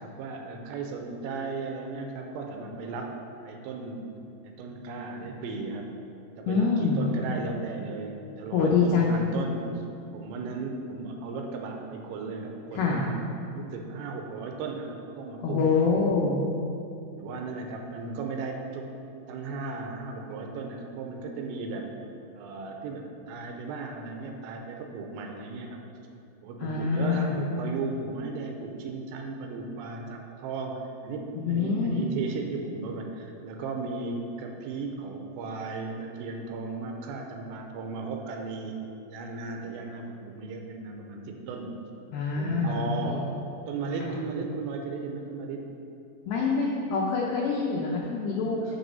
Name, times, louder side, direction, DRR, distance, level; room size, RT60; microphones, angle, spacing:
voice 1, 0.0-3.2 3.4-4.1 4.4-5.9 6.4-9.8 10.1-13.2 13.5-15.6 17.2-18.9 19.3-21.9 22.3-25.9 26.4-38.8 39.1-41.8 42.3-43.3 43.7-45.7 48.6-48.8, right 4 dB, 85° right, 2 dB, 3.4 m, -36 dB
voice 2, 6.5-7.0 8.5-9.2 12.7-13.0 15.4-16.4 26.6-27.4 31.4-32.1 42.1-43.2 44.0-44.1 46.3-48.8, left 4 dB, 85° left, -2 dB, 2.3 m, -25 dB
9.3 x 6.9 x 5.4 m, 2.7 s
omnidirectional pair, 5.9 m